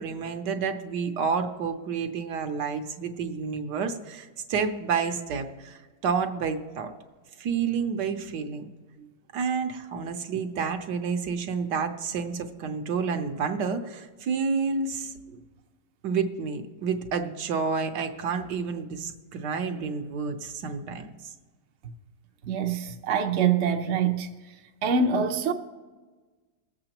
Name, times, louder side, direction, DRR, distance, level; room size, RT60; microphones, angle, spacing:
voice 1, 0.0-6.9 7.4-8.7 9.3-15.1 16.0-21.1, right 5 dB, 70° right, 1.4 m, -29 dB
voice 2, 22.4-24.3 24.8-25.5, right 5 dB, 55° right, 0.8 m, -25 dB
21.0 x 7.8 x 2.9 m
omnidirectional pair, 2.0 m